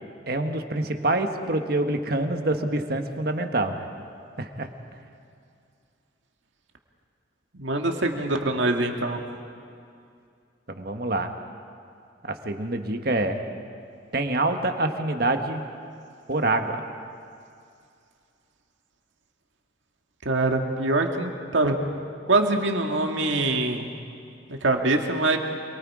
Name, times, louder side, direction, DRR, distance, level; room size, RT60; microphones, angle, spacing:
voice 1, 0.3-3.8 4.4-4.7 10.7-11.3 12.2-13.4 14.1-15.6 16.3-16.8, right 2 dB, 50° right, 6 dB, 1.4 m, -26 dB
voice 2, 7.5-9.2 20.2-21.8 22.3-23.8 24.6-25.4, right 2 dB, 75° right, 3 dB, 2.0 m, -24 dB
27.5 x 22.5 x 4.9 m, 2.4 s
head